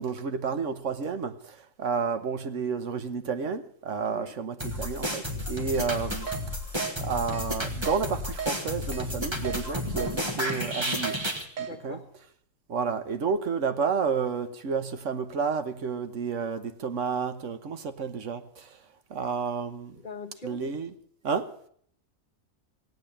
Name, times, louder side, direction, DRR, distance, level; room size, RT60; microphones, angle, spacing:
voice 1, 0.0-6.3 7.0-11.2 11.6-12.0 12.7-18.8 19.1-20.0 20.4-20.9 21.2-21.5, right 5 dB, 70° right, 1.4 m, -31 dB
sound 1, 4.6-11.4, equal, 20° right, 1.8 m, -32 dB
Keyboard (musical), 5.7-5.9 6.3-6.4 6.8-6.9 7.3-7.5 7.9-8.0 8.4-8.5 8.9-9.0 9.4-9.6 10.0-10.1 10.5-10.6 11.0-11.2 11.6-11.7, right 7 dB, 90° right, 1.9 m, -35 dB
voice 2, 11.6-12.1 20.0-20.6, left 3 dB, 40° left, 1.5 m, -41 dB
17.5 x 8.6 x 8.6 m
omnidirectional pair, 1.3 m